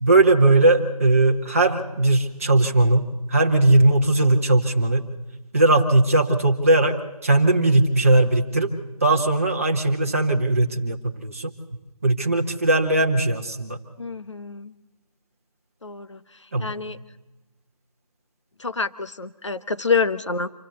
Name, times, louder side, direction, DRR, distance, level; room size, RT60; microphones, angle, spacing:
voice 1, 0.0-5.1 5.5-7.0 7.2-8.7 9.0-11.5 12.0-13.8 16.5-16.7, right 2 dB, 20° right, 1 dB, 1.3 m, -19 dB
voice 2, 14.0-14.7 15.8-16.2 16.6-17.0 18.6-20.5, left 4 dB, 50° left, 12 dB, 0.9 m, -27 dB
26.0 x 16.5 x 6.9 m, 1.1 s
figure-of-eight pair, 170°, 20 cm